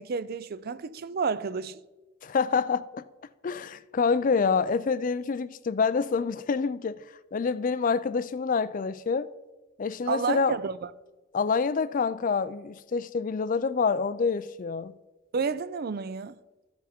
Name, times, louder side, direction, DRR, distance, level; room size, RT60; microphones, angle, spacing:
voice 1, 0.0-1.8 10.1-10.9 15.3-16.3, right 5 dB, 45° right, 0.4 m, -30 dB
voice 2, 2.2-3.0 3.4-7.0 7.3-9.3 9.8-10.6 11.3-14.9, left 5 dB, 40° left, 0.4 m, -27 dB
14.0 x 6.0 x 4.3 m
head